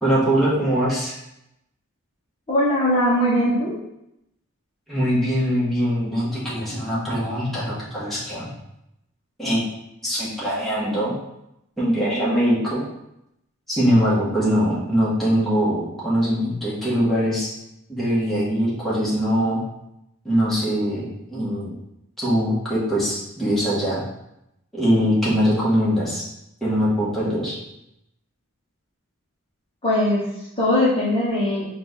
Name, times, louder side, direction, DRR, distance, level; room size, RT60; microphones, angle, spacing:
voice 1, 0.0-1.1 4.9-8.5 9.4-9.6 10.0-11.1 11.8-12.8 13.7-17.5 17.9-19.6 20.2-21.7 22.2-24.0 24.7-26.2 26.6-27.6, equal, ahead, -8 dB, 1.2 m, -22 dB
voice 2, 2.5-3.8 29.8-30.3 30.6-31.7, left 1 dB, 25° left, -8 dB, 0.9 m, -20 dB
4.4 x 2.4 x 4.0 m, 0.83 s
head